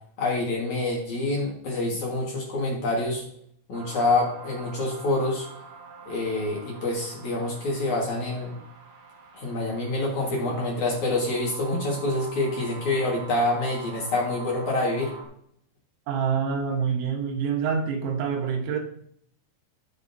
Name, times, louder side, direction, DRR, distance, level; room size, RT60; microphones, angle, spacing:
voice 1, 0.2-3.2 3.7-5.5 6.1-8.6 9.3-15.1, left 2 dB, 55° left, 2.5 m, -26 dB
sound 1, 3.7-15.3, right 4 dB, 60° right, 3.2 m, -45 dB
voice 2, 16.1-18.8, right 6 dB, 85° right, 3.7 m, -26 dB
17.5 x 6.0 x 2.7 m
omnidirectional pair, 5.2 m